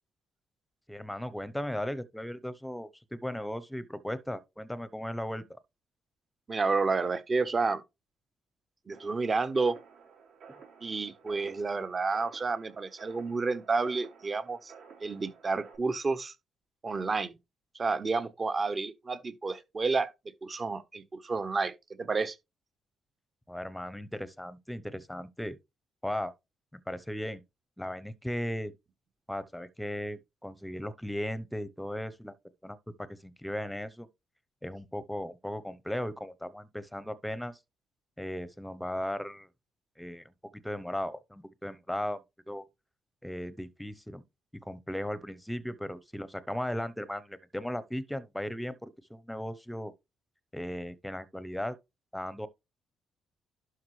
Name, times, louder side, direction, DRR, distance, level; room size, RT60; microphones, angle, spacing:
voice 1, 0.9-5.6 23.5-25.6 26.0-26.3 26.7-27.4 27.8-28.7 29.3-32.3 32.6-34.1 34.6-37.6 38.2-39.5 40.0-42.6 43.2-44.2 44.5-49.9 50.5-51.8 52.1-52.5, left 1 dB, 5° left, 0.8 m, -37 dB
voice 2, 6.5-7.8 8.9-9.8 10.8-14.7 15.0-16.3 16.8-17.4 17.7-20.1 20.4-22.4, right 4 dB, 35° right, 1.0 m, -30 dB
sound 1, 8.9-15.8, right 6 dB, 70° right, 4.1 m, -53 dB
11.5 x 4.8 x 3.2 m
cardioid pair, 90°, 0 cm